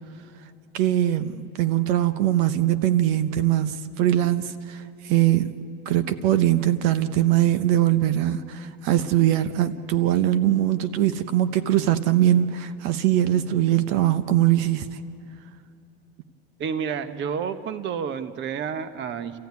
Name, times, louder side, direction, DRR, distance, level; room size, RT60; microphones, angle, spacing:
voice 1, 0.7-5.6 5.9-14.9, right 12 dB, 70° right, 1.0 m, -22 dB
voice 2, 16.6-19.4, right 7 dB, 35° right, 1.1 m, -30 dB
29.5 x 14.5 x 9.5 m
cardioid pair, 140°, 31 cm